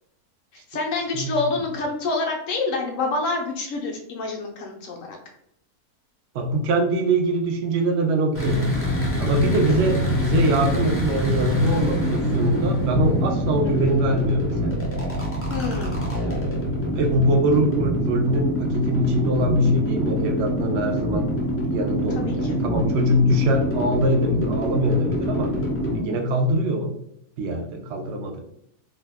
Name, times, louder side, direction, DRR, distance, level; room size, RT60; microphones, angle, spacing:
voice 1, 0.7-5.2 9.4-9.7 13.6-13.9 15.5-16.1 22.1-22.6, left 3 dB, 70° left, 0 dB, 0.8 m, -27 dB
voice 2, 6.3-8.6 9.2-14.8 16.9-21.3 21.6-25.5 25.9-26.9 27.4-28.4, right 1 dB, 70° right, 2 dB, 0.6 m, -23 dB
sound 1, 8.3-26.0, equal, 20° left, 0.4 m, -25 dB
2.7 x 2.2 x 3.3 m, 0.74 s
omnidirectional pair, 1.6 m